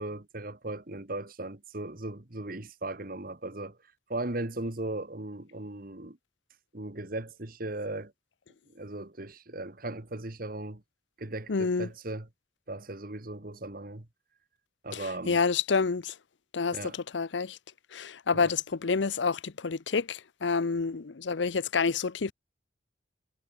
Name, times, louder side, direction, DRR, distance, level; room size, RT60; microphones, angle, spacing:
voice 1, 0.0-3.8 4.1-6.2 6.7-8.1 8.7-10.8 11.2-12.3 12.7-14.1 14.8-15.4 16.7-17.0 18.3-18.5, right 2 dB, 50° right, 1.8 m, -37 dB
voice 2, 11.5-11.9 14.9-16.1 16.5-16.8 17.1-17.6 17.9-22.3, left 5 dB, 75° left, 0.7 m, -28 dB
head